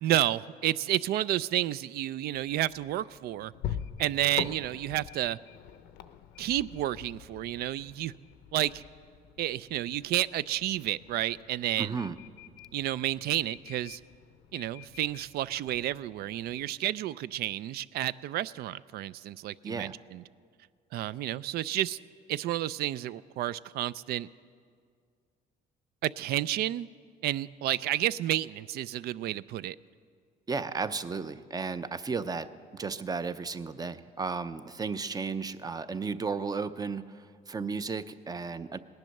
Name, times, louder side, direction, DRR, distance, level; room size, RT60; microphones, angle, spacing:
voice 1, 0.0-3.5 4.0-5.4 6.4-8.1 8.5-8.8 9.4-12.0 12.7-14.0 14.5-20.2 20.9-22.0 22.3-24.3 26.0-26.9 27.2-29.8, right 13 dB, 70° right, 19 dB, 0.4 m, -31 dB
sound 1, 2.3-16.7, left 9 dB, 85° left, 0.7 m, -45 dB
voice 2, 11.8-12.2 19.6-19.9 30.5-38.8, right 4 dB, 20° right, 12 dB, 0.6 m, -34 dB
18.0 x 10.5 x 6.5 m, 2.1 s
cardioid pair, 110°, 17 cm